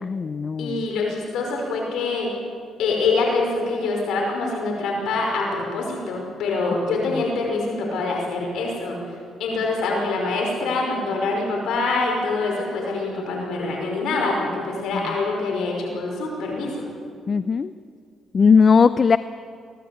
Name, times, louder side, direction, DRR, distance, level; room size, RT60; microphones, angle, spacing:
voice 1, 0.0-0.9 14.9-15.1 17.3-17.7 18.3-19.2, left 5 dB, 40° left, 13 dB, 0.6 m, -18 dB
voice 2, 0.6-2.3 2.8-9.0 9.4-16.7, left 3 dB, 80° left, 0 dB, 5.4 m, -25 dB
23.0 x 17.5 x 8.5 m, 2.2 s
cardioid pair, 90°, 0 cm